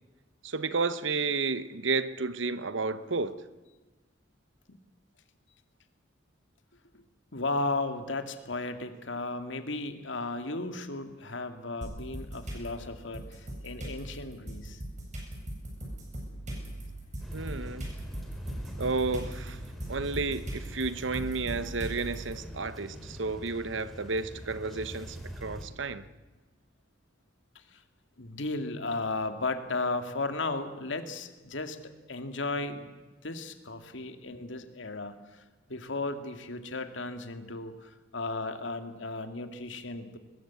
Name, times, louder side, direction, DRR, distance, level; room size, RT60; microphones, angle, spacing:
voice 1, 0.4-3.4 17.3-17.9 18.8-19.6 19.9-26.1, right 4 dB, 80° right, 1.0 m, -32 dB
voice 2, 7.3-14.8 27.7-27.8 28.2-31.8 32.1-32.9 33.2-35.4 35.7-40.2, left 3 dB, 75° left, 2.2 m, -35 dB
sound 1, 11.8-12.7 13.1-22.3, right 1 dB, 40° right, 8.0 m, -39 dB
sound 2, 17.2-25.7, equal, ahead, 4.0 m, -44 dB
21.5 x 20.5 x 8.4 m
head